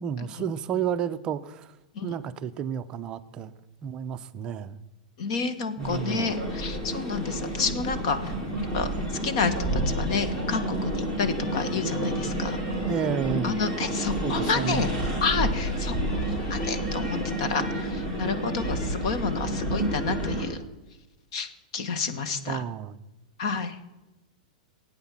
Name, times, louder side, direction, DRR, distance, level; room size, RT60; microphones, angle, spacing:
voice 1, 0.0-1.7 2.0-3.5 3.8-4.8 5.8-6.3 12.8-13.6 14.2-14.9 22.5-23.0, right 8 dB, 20° right, 10 dB, 0.5 m, -31 dB
voice 2, 5.2-8.3 8.7-8.9 9.2-12.6 13.4-14.9 15.2-15.9 16.5-20.6 21.3-21.5 21.7-22.6 23.4-23.8, left 5 dB, 45° left, 11 dB, 1.4 m, -29 dB
sound 1, 5.8-20.5, right 1 dB, 20° left, 3.4 m, -29 dB
17.0 x 8.9 x 7.3 m, 1.1 s
supercardioid pair, 175°, 4 cm